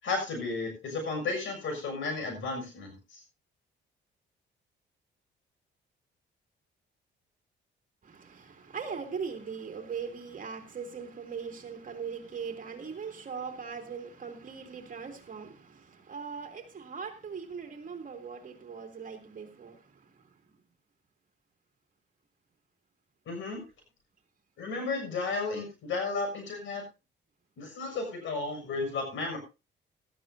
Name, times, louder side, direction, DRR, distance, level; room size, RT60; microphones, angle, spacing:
voice 1, 0.0-3.2 23.2-23.6 24.6-26.8 27.6-29.4, left 3 dB, 75° left, 4 dB, 6.6 m, -33 dB
voice 2, 8.0-19.8, right 6 dB, 40° right, 4 dB, 2.9 m, -40 dB
17.0 x 13.5 x 2.8 m, 0.28 s
cardioid pair, 90°, 20 cm